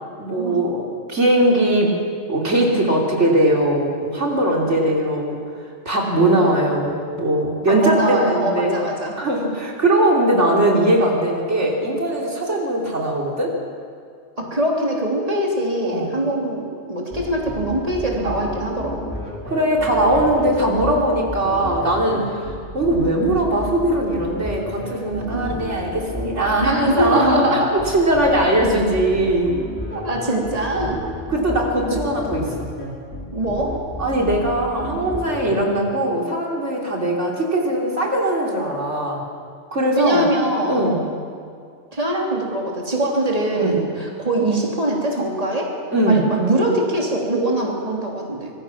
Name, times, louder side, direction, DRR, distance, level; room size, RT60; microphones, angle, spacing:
voice 1, 0.2-0.8 1.1-2.0 2.3-5.4 5.9-8.8 9.2-13.5 15.8-16.2 18.1-18.3 19.5-27.5 27.7-29.6 31.3-32.7 34.0-39.2 39.7-40.2 40.7-41.0 43.5-43.8 45.9-46.3, right 1 dB, 90° right, -2 dB, 3.6 m, -20 dB
voice 2, 7.7-9.1 14.4-19.1 25.3-25.6 26.6-27.8 29.9-31.1 31.9-32.0 33.3-33.8 40.0-40.8 41.9-45.8 46.1-48.5, right 1 dB, 30° right, -2 dB, 3.3 m, -23 dB
sound 1, 17.1-35.6, left 1 dB, 10° left, 5.1 m, -32 dB
25.0 x 21.0 x 6.0 m, 2.2 s
omnidirectional pair, 1.2 m